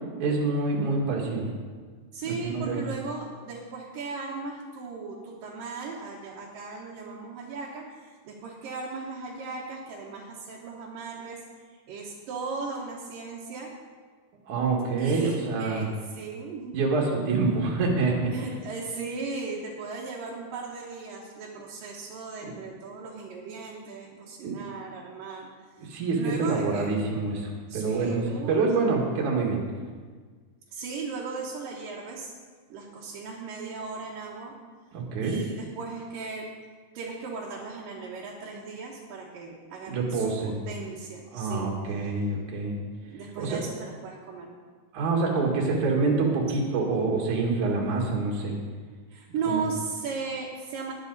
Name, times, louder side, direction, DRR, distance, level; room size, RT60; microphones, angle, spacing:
voice 1, 0.2-1.5 2.2-2.8 14.5-15.9 16.7-18.3 22.4-22.5 24.4-24.6 25.8-29.6 34.9-35.4 39.9-40.6 41.3-42.7 43.4-43.6 44.9-48.5 49.4-49.6, right 3 dB, 60° right, -1 dB, 3.2 m, -26 dB
voice 2, 2.1-11.4 11.7-13.7 15.0-17.1 18.3-25.5 26.1-26.9 27.7-28.9 30.7-32.3 32.7-34.5 35.2-36.5 36.9-41.7 43.1-44.5 46.5-46.6 49.1-50.9, right 4 dB, 75° right, -4 dB, 3.0 m, -37 dB
19.5 x 8.3 x 4.1 m, 1.5 s
omnidirectional pair, 3.9 m